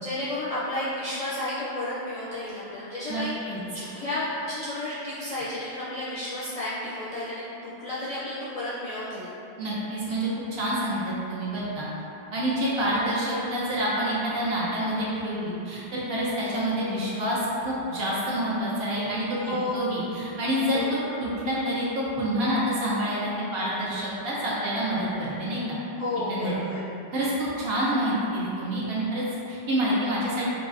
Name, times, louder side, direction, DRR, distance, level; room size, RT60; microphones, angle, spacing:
voice 1, 0.0-9.3 19.4-19.7 20.7-20.9 25.9-26.9, left 1 dB, 55° left, -9 dB, 0.4 m, -32 dB
voice 2, 9.6-11.9 12.3-25.8 26.3-26.5 27.1-30.5, equal, 65° right, -7 dB, 0.9 m, -27 dB
3.9 x 2.4 x 2.4 m, 2.9 s
omnidirectional pair, 1.1 m